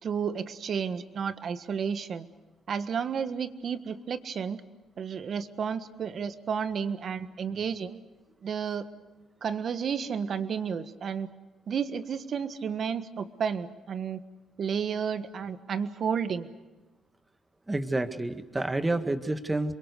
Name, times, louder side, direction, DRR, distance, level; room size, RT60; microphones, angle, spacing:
voice 1, 0.0-2.3 2.7-4.6 5.0-8.0 8.4-8.8 9.4-11.3 11.7-14.2 14.6-16.5, right 7 dB, 55° right, 11 dB, 1.4 m, -32 dB
voice 2, 17.7-19.7, right 2 dB, 15° right, 8 dB, 1.8 m, -29 dB
27.5 x 22.5 x 6.7 m, 1.2 s
cardioid pair, 90°, 0 cm